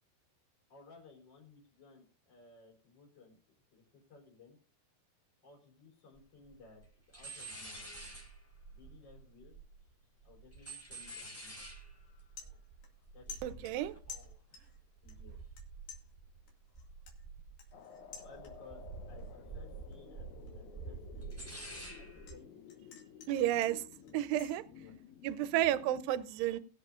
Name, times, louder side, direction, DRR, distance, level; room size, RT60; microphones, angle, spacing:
voice 1, 0.7-3.4 3.7-4.6 5.4-8.2 8.7-9.6 10.2-11.7 13.1-13.7 15.0-15.4 18.2-21.5 21.9-22.9 24.0-24.2 24.7-25.2, left 3 dB, 25° left, 4.6 m, -59 dB
sound 1, 6.2-6.3 6.5-6.9 7.1-9.9 10.2-16.5 16.7-17.8 18.1-22.4, right 3 dB, 5° left, 3.4 m, -48 dB
sound 2, 11.5-11.7 12.0-13.0 13.3-14.8 15.1-15.6 15.9-18.8 19.2-19.5 19.9-22.4 22.7-24.6, left 7 dB, 60° left, 3.7 m, -52 dB
voice 2, 13.4-13.9 23.3-23.8 24.1-24.6 25.2-26.6, right 12 dB, 85° right, 2.8 m, -31 dB
sound 3, 17.7-26.1, left 7 dB, 80° left, 1.7 m, -54 dB
21.0 x 8.1 x 2.5 m
omnidirectional pair, 4.7 m